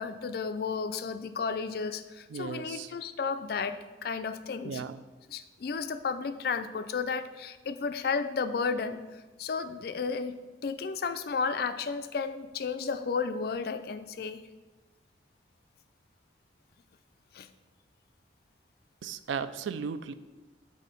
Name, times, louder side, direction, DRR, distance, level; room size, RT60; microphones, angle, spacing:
voice 1, 0.0-4.8 5.3-9.0 9.4-10.3 10.6-14.4 17.3-17.5, left 5 dB, 55° left, 11 dB, 0.4 m, -33 dB
voice 2, 2.3-2.9 4.6-5.0 19.0-20.1, right 6 dB, 85° right, 13 dB, 0.4 m, -36 dB
6.3 x 4.2 x 5.2 m, 1.2 s
head